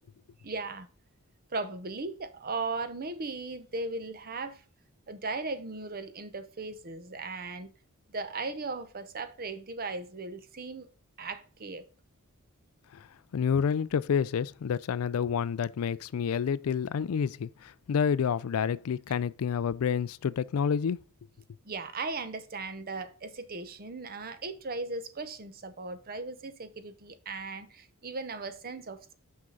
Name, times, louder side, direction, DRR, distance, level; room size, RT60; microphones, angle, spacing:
voice 1, 0.4-0.9 1.5-4.6 5.1-7.7 8.1-10.9 11.2-11.9 21.6-29.2, right 3 dB, 45° right, 0.8 m, -37 dB
voice 2, 13.3-21.0, left 7 dB, 75° left, 0.4 m, -29 dB
6.1 x 5.8 x 3.9 m
head